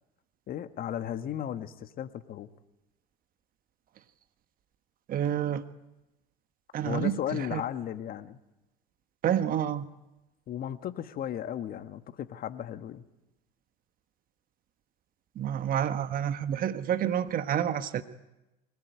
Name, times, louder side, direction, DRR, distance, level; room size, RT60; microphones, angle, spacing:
voice 1, 0.5-2.5 6.8-8.4 10.5-13.0, left 10 dB, 45° left, 10 dB, 1.5 m, -35 dB
voice 2, 5.1-5.6 6.7-7.6 9.2-9.9 15.3-18.0, right 9 dB, 45° right, 11 dB, 1.4 m, -29 dB
22.5 x 19.0 x 9.4 m, 0.99 s
hypercardioid pair, 80°, 20 cm